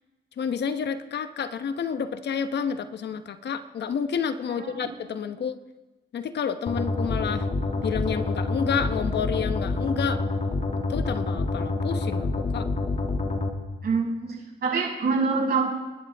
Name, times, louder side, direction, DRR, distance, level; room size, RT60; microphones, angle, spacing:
voice 1, 0.4-5.6 6.1-7.5 7.8-10.2 10.9-12.7, left 7 dB, 60° left, 9 dB, 1.0 m, -29 dB
voice 2, 4.5-5.1 13.8-15.6, right 4 dB, 50° right, -4 dB, 6.3 m, -26 dB
sound 1, 6.7-13.5, left 2 dB, 35° left, 2.3 m, -27 dB
28.5 x 11.5 x 3.5 m, 1.2 s
cardioid pair, 90°, 20 cm